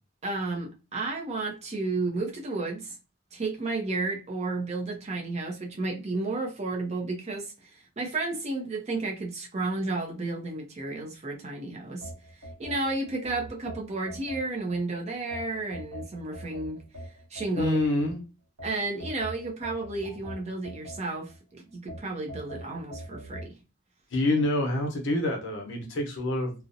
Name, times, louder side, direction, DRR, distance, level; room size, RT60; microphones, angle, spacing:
voice 1, 0.2-2.9 3.3-12.1 12.6-16.8 17.3-17.8 18.6-23.6, right 3 dB, 30° right, 0.5 m, -32 dB
sound 1, 12.0-14.8 15.3-18.1 18.6-21.4 21.9-23.5, right 1 dB, 85° right, 1.0 m, -42 dB
voice 2, 17.6-18.2 24.1-26.5, left 1 dB, 55° left, 0.7 m, -26 dB
2.5 x 2.0 x 2.6 m
head